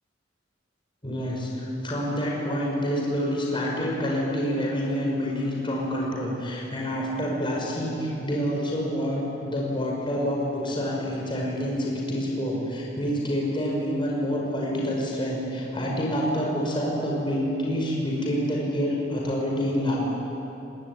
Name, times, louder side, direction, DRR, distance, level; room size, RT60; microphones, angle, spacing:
voice 1, 1.0-20.0, equal, 30° left, -3 dB, 5.7 m, -27 dB
24.0 x 20.0 x 9.8 m, 2.9 s
head